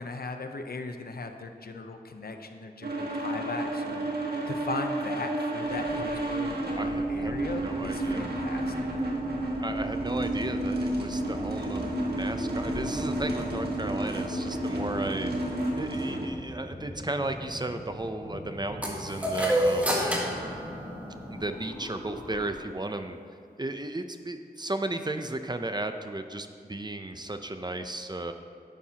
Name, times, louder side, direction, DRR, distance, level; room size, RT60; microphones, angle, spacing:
voice 1, 0.0-4.1 4.5-8.9, left 3 dB, 70° left, 5 dB, 0.8 m, -38 dB
sound 1, 2.8-16.3, right 1 dB, 80° right, 1.6 m, -31 dB
sound 2, 5.6-22.5, equal, 25° left, 2.2 m, -42 dB
voice 2, 6.8-8.3 9.6-11.9 12.1-20.5 21.3-23.2 23.6-28.3, right 2 dB, 25° right, 7 dB, 0.6 m, -35 dB
sound 3, 18.8-21.5, equal, 10° right, 1.8 m, -28 dB
12.0 x 9.9 x 2.9 m, 2.3 s
wide cardioid pair, 70°, 16 cm